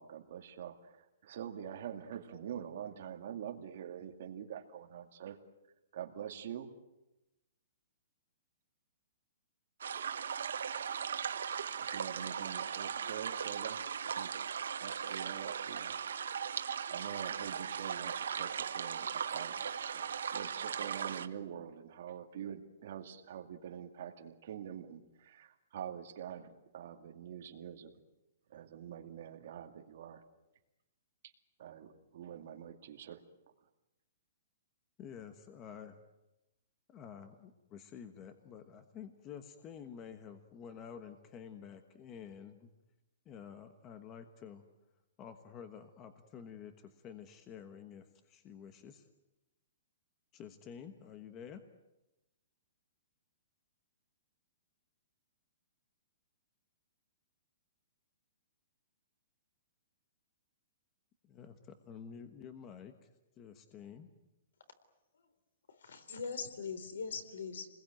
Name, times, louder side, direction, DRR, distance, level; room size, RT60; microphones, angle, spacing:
voice 1, 0.0-5.4 5.9-6.7 11.8-14.5 14.8-16.0 16.9-28.0 28.5-30.2 31.6-33.3, right 9 dB, 45° right, 5 dB, 2.3 m, -45 dB
sound 1, 9.8-21.3, right 7 dB, 90° right, 1.4 m, -38 dB
voice 2, 35.0-36.0 36.9-42.7 43.2-44.6 45.2-49.1 50.3-51.6 61.2-62.9 63.4-64.1, left 7 dB, 20° left, 9 dB, 1.2 m, -50 dB
voice 3, 65.7-67.7, left 5 dB, 80° left, 11 dB, 3.9 m, -41 dB
29.5 x 21.0 x 9.2 m, 0.98 s
hypercardioid pair, 175°, 0 cm